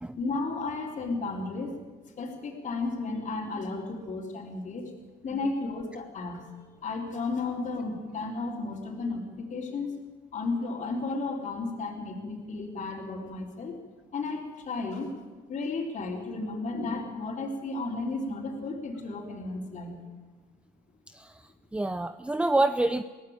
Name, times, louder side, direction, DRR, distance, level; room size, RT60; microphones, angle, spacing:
voice 1, 0.2-1.8 2.2-4.9 5.2-10.0 10.3-13.8 14.1-15.1 15.5-20.0, left 3 dB, 45° left, -5 dB, 4.2 m, -33 dB
voice 2, 21.7-23.0, right 2 dB, 5° right, 11 dB, 0.6 m, -26 dB
22.5 x 17.0 x 9.0 m, 1.3 s
cardioid pair, 110°, 17 cm